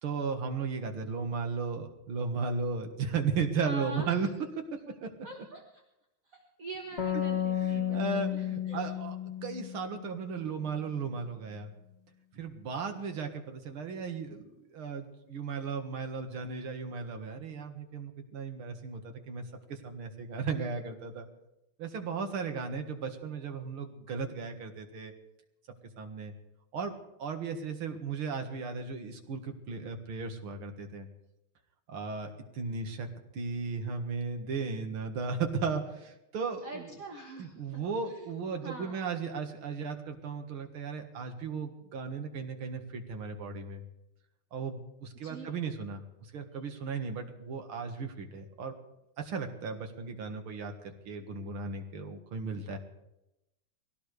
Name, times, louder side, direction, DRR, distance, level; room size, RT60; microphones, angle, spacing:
voice 1, 0.0-4.3 4.6-4.7 5.0-5.1 7.6-9.2 9.4-11.7 12.3-21.3 21.8-25.1 26.0-26.3 26.7-31.1 31.9-33.1 33.3-36.9 37.4-43.8 44.5-48.7 49.2-52.8, right 5 dB, 85° right, 5 dB, 2.5 m, -36 dB
voice 2, 3.6-4.3 5.2-5.8 6.3-8.9 36.6-38.3 38.6-39.1 45.2-45.5, right 3 dB, 45° right, 1 dB, 1.8 m, -44 dB
sound 1, 7.0-10.5, left 10 dB, 35° left, 1.2 m, -33 dB
23.0 x 17.0 x 3.3 m, 0.90 s
omnidirectional pair, 2.3 m